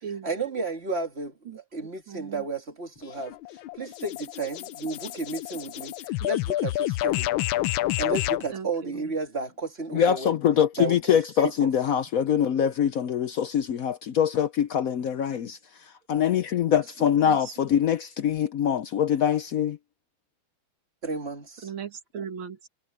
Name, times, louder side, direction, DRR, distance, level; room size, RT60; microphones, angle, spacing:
voice 1, 0.0-3.4 3.8-7.3 8.0-10.4 10.8-11.2 11.4-11.7 16.7-16.8 21.0-21.7, right 3 dB, 30° right, 2.5 m, -33 dB
voice 2, 2.1-2.4 8.5-8.9 21.6-22.7, right 7 dB, 85° right, 2.7 m, -37 dB
sound 1, 3.0-8.5, left 15 dB, 85° left, 1.4 m, -29 dB
voice 3, 9.9-19.8, left 9 dB, 70° left, 0.8 m, -24 dB
omnidirectional pair, 2.1 m